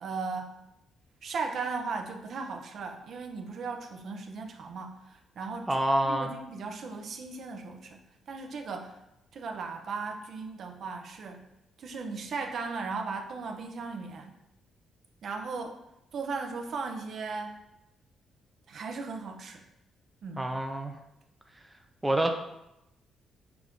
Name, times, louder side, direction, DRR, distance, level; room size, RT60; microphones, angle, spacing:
voice 1, 0.0-0.6 1.2-5.8 6.1-9.0 9.3-11.4 11.8-14.4 15.2-15.8 16.1-17.6 18.7-19.6 20.2-20.5, right 4 dB, 60° right, 4 dB, 0.6 m, -37 dB
voice 2, 5.7-6.3 20.4-21.0 22.0-22.3, right 1 dB, 10° right, 4 dB, 0.4 m, -27 dB
5.8 x 2.5 x 3.5 m, 0.86 s
cardioid pair, 90°, 0 cm